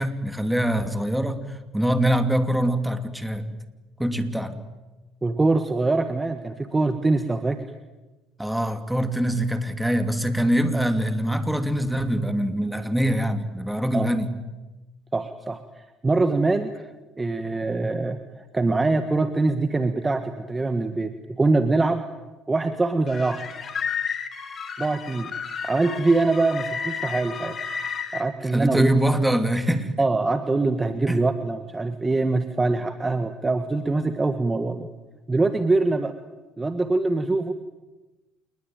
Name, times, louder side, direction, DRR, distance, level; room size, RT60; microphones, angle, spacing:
voice 1, 0.0-3.5 4.0-4.5 8.4-14.3 28.5-29.9 31.1-31.2, right 1 dB, 5° right, 8 dB, 2.8 m, -24 dB
voice 2, 5.2-7.6 13.9-14.1 15.1-16.8 17.2-18.2 18.5-22.0 22.5-23.5 24.8-25.4 25.6-27.5 28.1-29.0 30.0-34.9 35.3-36.1 36.6-37.5, right 3 dB, 20° right, 9 dB, 1.6 m, -23 dB
sound 1, 23.1-28.2, left 6 dB, 40° left, 3.4 m, -32 dB
28.0 x 21.0 x 9.2 m, 1.1 s
supercardioid pair, 90°, 0 cm